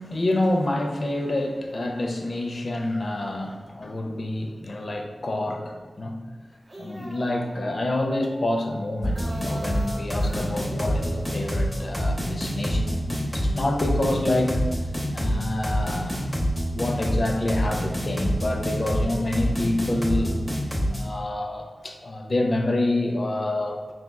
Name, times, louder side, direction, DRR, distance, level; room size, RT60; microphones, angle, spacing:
voice 1, 0.0-6.3 6.8-14.6 15.1-16.2 16.7-20.4 20.9-23.9, left 1 dB, 55° left, 3 dB, 0.5 m, -27 dB
sound 1, 6.5-12.0, right 1 dB, 30° right, 0.8 m, -41 dB
sound 2, 9.0-21.0, equal, 10° left, 0.8 m, -26 dB
4.8 x 3.5 x 2.2 m, 1.3 s
wide cardioid pair, 60°, 0 cm